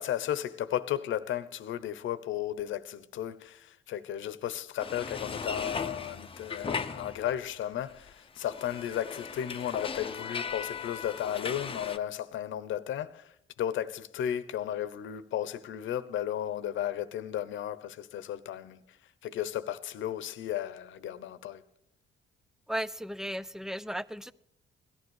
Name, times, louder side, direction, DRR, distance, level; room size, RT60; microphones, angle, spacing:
voice 1, 0.0-13.3 13.6-19.0 19.2-21.6, left 11 dB, 75° left, 0.9 m, -34 dB
sound 1, 4.8-7.6 7.9-12.0, left 5 dB, 25° left, 0.7 m, -38 dB
voice 2, 22.7-24.3, equal, ahead, 0.5 m, -35 dB
17.5 x 12.0 x 6.4 m
cardioid pair, 90°, 20 cm